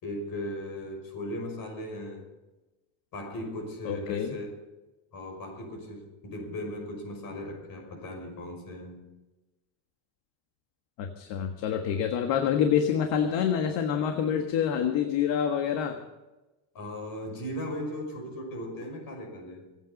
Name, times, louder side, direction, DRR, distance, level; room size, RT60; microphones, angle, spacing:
voice 1, 0.0-2.3 3.1-4.5 5.1-9.0 16.7-19.8, left 1 dB, 45° left, 5.9 m, -37 dB
voice 2, 3.8-4.3 11.0-16.0, left 8 dB, 60° left, 1.7 m, -27 dB
25.5 x 9.2 x 5.3 m
cardioid pair, 140°, 50 cm